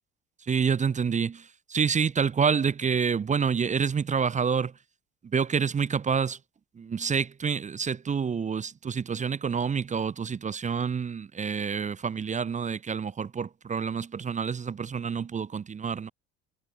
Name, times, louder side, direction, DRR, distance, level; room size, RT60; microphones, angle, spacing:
voice 1, 0.5-4.7 5.2-6.4 6.8-16.1, right 6 dB, 20° right, 0.8 m, -28 dB
figure-of-eight pair, 65°, 34 cm